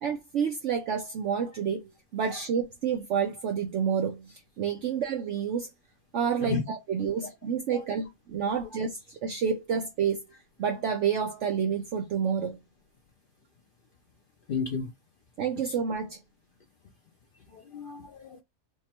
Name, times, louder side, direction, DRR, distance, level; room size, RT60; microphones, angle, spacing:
voice 1, 0.0-1.8 2.1-5.7 6.1-10.2 10.6-12.6 15.4-16.2, right 7 dB, 65° right, 0.8 m, -29 dB
voice 2, 14.5-14.9 15.6-15.7 17.5-18.4, left 5 dB, 60° left, 0.5 m, -33 dB
3.6 x 2.1 x 4.2 m
omnidirectional pair, 1.5 m